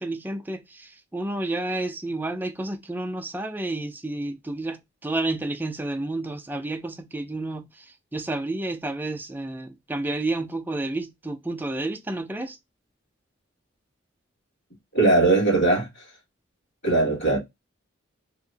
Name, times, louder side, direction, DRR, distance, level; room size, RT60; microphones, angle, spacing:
voice 1, 0.0-12.6, right 2 dB, 10° right, 0.3 m, -30 dB
voice 2, 14.9-16.0 16.8-17.4, right 2 dB, 60° left, 1.5 m, -20 dB
2.8 x 2.7 x 2.6 m
head